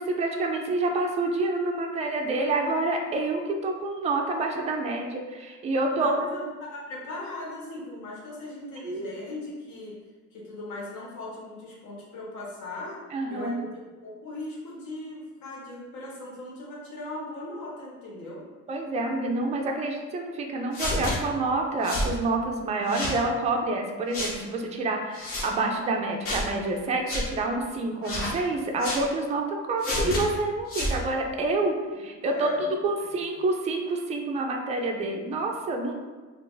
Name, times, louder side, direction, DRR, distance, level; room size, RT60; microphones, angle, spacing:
voice 1, 0.0-6.4 8.8-9.1 13.1-13.7 18.7-35.9, right 2 dB, 20° right, 2 dB, 0.3 m, -28 dB
voice 2, 5.9-10.0 10.3-13.0 13.3-18.4 32.2-32.6 33.0-33.1, left 2 dB, 70° left, -5 dB, 1.2 m, -39 dB
sound 1, 20.7-21.2 21.8-22.1 22.9-23.2 24.1-24.3 25.1-25.5 26.2-26.5 27.1-27.2 28.0-28.4 28.8-29.0 29.8-30.2 30.7-31.0, left 1 dB, 45° left, 0.9 m, -29 dB
2.5 x 2.5 x 3.8 m, 1.3 s
cardioid pair, 135°, 32 cm